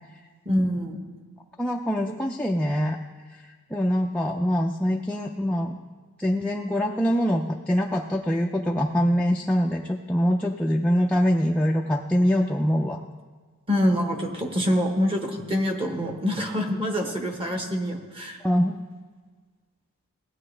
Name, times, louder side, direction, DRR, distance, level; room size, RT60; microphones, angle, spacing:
voice 1, 0.4-1.0 13.7-18.4, equal, 25° right, 3 dB, 1.1 m, -25 dB
voice 2, 1.6-3.0 3.4-5.8 6.2-13.0 18.4-18.8, equal, 5° left, -1 dB, 0.4 m, -24 dB
17.0 x 8.5 x 3.3 m, 1.5 s
head